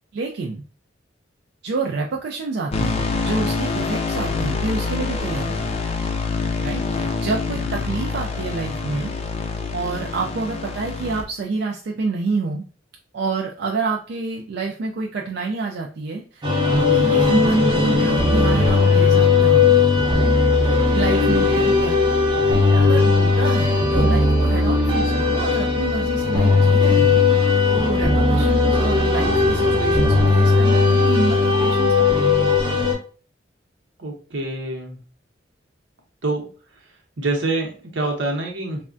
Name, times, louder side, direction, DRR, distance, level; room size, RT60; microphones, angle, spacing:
voice 1, 0.1-0.6 1.6-5.7 6.6-9.1 9.7-12.6 13.1-16.5 16.7-22.0 22.5-27.4 27.7-32.2, right 4 dB, 65° right, 0 dB, 0.4 m, -28 dB
sound 1, 2.7-11.2, left 4 dB, 35° left, 0.4 m, -26 dB
sound 2, 16.4-32.9, left 3 dB, 25° right, 0.7 m, -17 dB
voice 2, 21.2-21.8 34.0-35.0 36.2-36.5 37.2-38.8, right 2 dB, 85° right, 1 dB, 0.8 m, -26 dB
3.4 x 2.1 x 2.5 m, 0.39 s
head